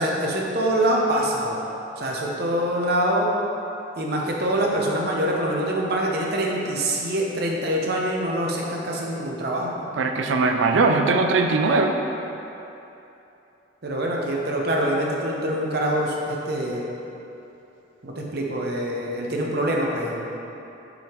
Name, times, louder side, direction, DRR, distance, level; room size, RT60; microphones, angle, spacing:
voice 1, 0.0-1.6 2.0-3.3 4.0-9.9 13.8-16.9 18.0-20.2, right 1 dB, 55° right, -2 dB, 0.8 m, -25 dB
voice 2, 10.0-12.0, right 3 dB, 90° right, 4 dB, 0.4 m, -20 dB
6.0 x 3.6 x 4.5 m, 2.9 s
head